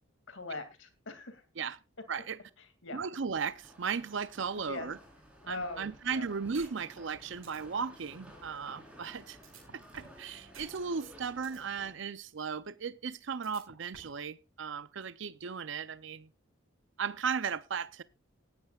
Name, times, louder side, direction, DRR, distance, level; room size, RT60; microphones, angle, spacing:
voice 1, 0.3-1.4 2.6-3.0 4.6-4.9 5.5-6.3, left 2 dB, 65° left, 2.5 m, -42 dB
voice 2, 2.1-2.4 2.9-5.0 5.5-9.4 9.7-16.3 17.0-18.0, right 6 dB, 60° right, 0.5 m, -36 dB
sound 1, 3.4-11.9, equal, 5° right, 4.3 m, -55 dB
sound 2, 6.5-6.7 7.1-7.2 7.4-7.6 9.4-10.2 10.5-10.7 11.0-11.6 13.4-14.2, right 5 dB, 80° right, 4.9 m, -51 dB
18.0 x 11.0 x 2.4 m
head